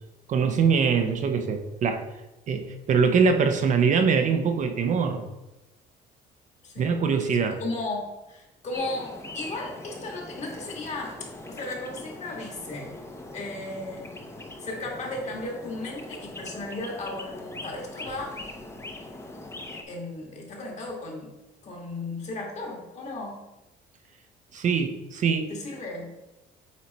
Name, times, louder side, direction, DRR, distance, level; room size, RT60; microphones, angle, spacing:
voice 1, 0.3-2.0 2.5-5.2 6.8-7.6 24.5-25.5, right 5 dB, 45° right, 6 dB, 0.7 m, -23 dB
voice 2, 6.6-7.3 7.6-12.9 13.3-14.1 14.6-18.3 19.9-21.3 21.6-23.4 25.5-26.1, left 2 dB, 40° left, -1 dB, 1.9 m, -35 dB
sound 1, 8.7-19.8, left 2 dB, 15° left, 0.7 m, -41 dB
8.3 x 3.2 x 4.2 m, 1.0 s
cardioid pair, 110°, 17 cm